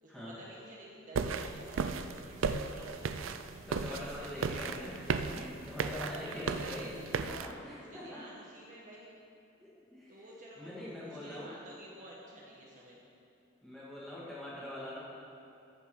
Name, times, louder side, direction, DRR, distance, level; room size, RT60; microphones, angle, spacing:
voice 1, 0.0-3.2 3.8-4.8 6.3-7.1 7.8-9.1 10.1-13.0, equal, 40° right, -4 dB, 1.2 m, -51 dB
sound 1, 1.1-7.5, right 5 dB, 80° right, 0.5 m, -36 dB
voice 2, 3.7-5.1 5.3-8.2 9.6-10.3 10.6-11.5 13.6-15.0, left 1 dB, ahead, -9 dB, 2.4 m, -43 dB
14.5 x 6.8 x 4.8 m, 2.6 s
head